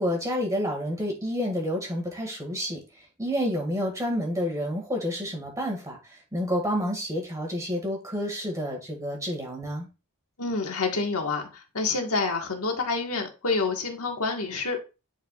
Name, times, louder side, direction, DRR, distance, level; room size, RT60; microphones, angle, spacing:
voice 1, 0.0-2.8 3.2-6.0 6.3-9.9, equal, 15° right, 0 dB, 2.0 m, -29 dB
voice 2, 10.4-14.8, left 3 dB, 70° left, 3 dB, 1.6 m, -28 dB
10.5 x 4.7 x 2.4 m, 0.30 s
head